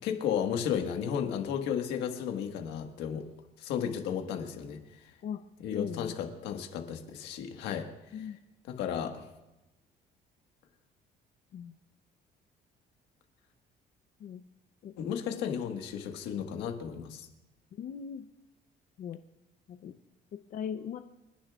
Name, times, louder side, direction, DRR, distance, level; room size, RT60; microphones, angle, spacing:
voice 1, 0.0-3.3 3.6-5.1 5.6-7.9 8.1-8.3 8.7-9.2 15.0-17.3, left 8 dB, 90° left, 4 dB, 1.6 m, -34 dB
voice 2, 5.7-6.1 8.1-8.4 11.5-11.7 14.2-14.4 14.8-14.9 15.3-15.4 17.8-18.2 19.0-19.2 19.7-19.9 20.3-21.0, left 8 dB, 55° left, 7 dB, 0.7 m, -39 dB
28.0 x 10.5 x 2.4 m, 0.97 s
cardioid pair, 110°, 17 cm